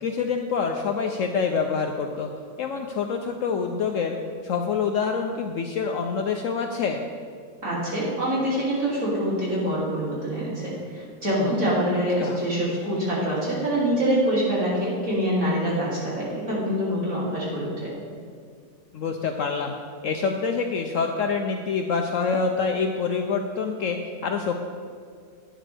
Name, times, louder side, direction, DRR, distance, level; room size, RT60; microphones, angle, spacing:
voice 1, 0.0-2.3 2.6-4.2 4.4-7.0 12.2-12.4 18.9-19.7 20.0-24.6, left 5 dB, 65° left, 4 dB, 0.8 m, -26 dB
voice 2, 7.6-17.9, equal, 55° right, -7 dB, 3.4 m, -25 dB
11.0 x 9.2 x 3.4 m, 2.1 s
omnidirectional pair, 1.7 m